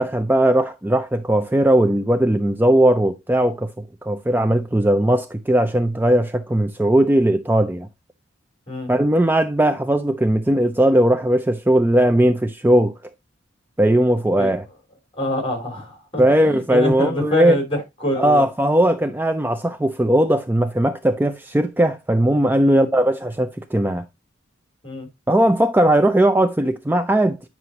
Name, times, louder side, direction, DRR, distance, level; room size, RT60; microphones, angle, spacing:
voice 1, 0.0-7.9 8.9-12.9 13.8-14.7 16.2-17.6 18.2-24.0 25.3-27.4, right 1 dB, 10° right, 0.4 m, -18 dB
voice 2, 15.2-18.5 22.6-22.9 24.8-25.1, left 1 dB, 30° left, 3.3 m, -25 dB
9.5 x 6.0 x 2.8 m
head